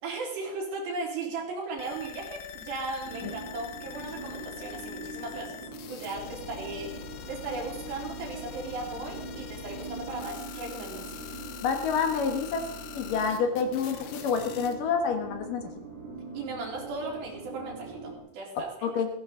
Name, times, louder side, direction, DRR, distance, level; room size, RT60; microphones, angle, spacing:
voice 1, 0.0-5.6 5.9-6.9 7.3-11.3 16.3-18.9, right 3 dB, 60° right, -2 dB, 5.7 m, -37 dB
sound 1, 1.8-14.7, left 9 dB, 75° left, 3.5 m, -44 dB
sound 2, 3.0-18.2, right 3 dB, 35° right, 4.6 m, -42 dB
voice 2, 11.6-12.6 12.9-15.6 18.8-19.1, left 6 dB, 60° left, 4 dB, 2.4 m, -28 dB
16.5 x 16.0 x 3.9 m, 0.85 s
omnidirectional pair, 5.6 m